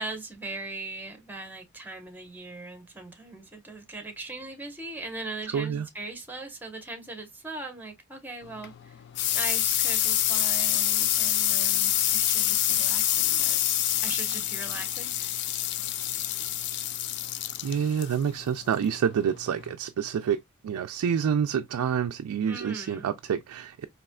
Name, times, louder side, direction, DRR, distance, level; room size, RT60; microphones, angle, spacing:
voice 1, 0.0-9.0 9.3-13.6 14.0-15.4 22.5-23.1, right 2 dB, 10° right, 0.9 m, -40 dB
voice 2, 5.5-5.9 17.6-23.8, right 7 dB, 80° right, 0.3 m, -28 dB
sound 1, 8.4-19.7, left 12 dB, 50° left, 0.3 m, -27 dB
4.1 x 2.9 x 2.2 m
head